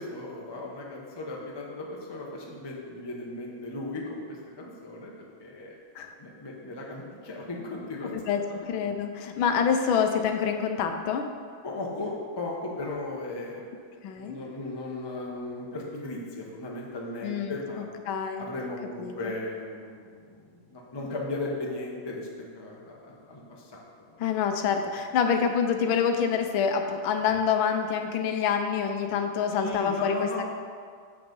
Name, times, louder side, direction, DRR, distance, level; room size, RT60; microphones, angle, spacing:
voice 1, 0.0-5.1 5.4-5.8 6.2-8.1 11.6-17.9 18.4-22.3 22.5-23.8 29.6-30.4, left 2 dB, 20° left, -2 dB, 0.6 m, -36 dB
voice 2, 8.7-11.3 14.0-14.4 17.2-18.5 19.0-19.3 24.2-30.4, left 7 dB, 90° left, 6 dB, 1.5 m, -26 dB
7.2 x 6.0 x 5.3 m, 2.1 s
omnidirectional pair, 2.2 m